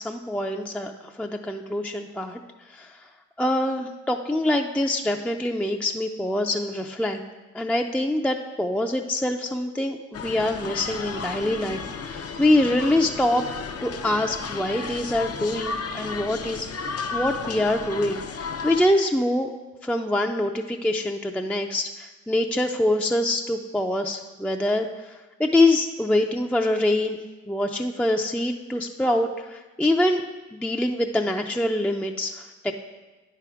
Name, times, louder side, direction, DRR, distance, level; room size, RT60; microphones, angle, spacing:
voice 1, 0.0-3.1 3.4-7.2 7.5-13.4 13.8-16.7 17.1-19.5 19.8-27.2 27.5-30.2 30.5-32.7, left 1 dB, 5° left, 3 dB, 0.4 m, -25 dB
sound 1, 10.1-18.9, left 5 dB, 55° left, 0.6 m, -33 dB
8.8 x 3.5 x 5.9 m, 1.2 s
supercardioid pair, 45°, 30 cm